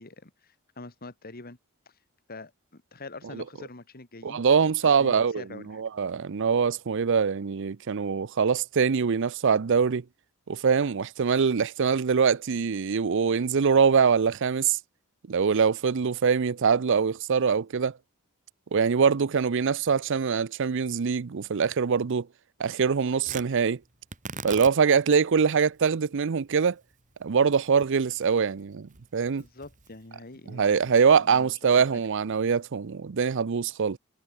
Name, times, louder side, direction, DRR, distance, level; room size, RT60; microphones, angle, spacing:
voice 1, 0.0-1.6 1.9-2.0 2.3-4.4 4.8-5.8 29.4-32.0, left 3 dB, 45° left, 2.0 m, -45 dB
voice 2, 4.2-5.4 5.7-10.0 10.5-14.8 15.3-17.9 18.7-22.3 22.6-23.8 24.4-26.8 27.2-29.4 30.5-34.0, right 6 dB, 60° right, 0.5 m, -23 dB
Tearing, 23.2-31.6, right 5 dB, 35° right, 2.2 m, -45 dB
head